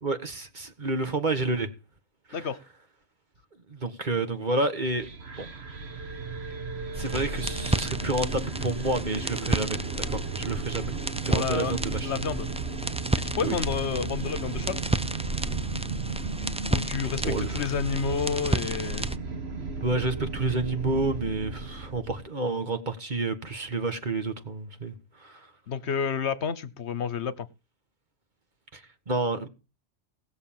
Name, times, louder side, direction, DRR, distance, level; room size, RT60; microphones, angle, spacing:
voice 1, 0.0-1.7 2.3-2.5 3.7-5.1 5.4-5.5 7.0-10.9 11.3-12.1 13.4-13.6 17.2-17.7 19.8-25.5 28.7-29.5, right 3 dB, 40° right, 1.6 m, -29 dB
sound 1, 4.8-22.3, right 4 dB, 65° right, 1.6 m, -35 dB
sound 2, 6.9-19.2, right 1 dB, 10° right, 0.3 m, -32 dB
voice 2, 11.3-11.7 12.1-12.5 13.2-14.8 16.7-19.1 25.7-27.5, left 6 dB, 70° left, 1.2 m, -30 dB
19.0 x 6.7 x 7.3 m
omnidirectional pair, 1.2 m